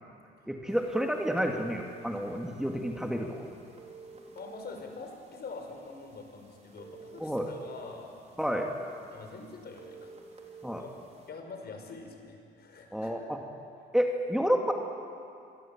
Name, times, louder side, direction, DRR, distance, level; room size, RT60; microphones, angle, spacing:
voice 1, 0.5-3.5 7.2-7.5 8.4-8.7 10.6-10.8 12.9-13.4 13.9-14.7, equal, 5° right, 1 dB, 2.4 m, -30 dB
sound 1, 0.7-11.3, right 3 dB, 35° right, 4.5 m, -52 dB
voice 2, 4.3-8.1 8.5-8.6 8.9-10.5 10.8-10.9 11.3-13.2, left 4 dB, 55° left, 3 dB, 5.8 m, -45 dB
26.0 x 22.0 x 8.9 m, 2.5 s
cardioid pair, 90°, 20 cm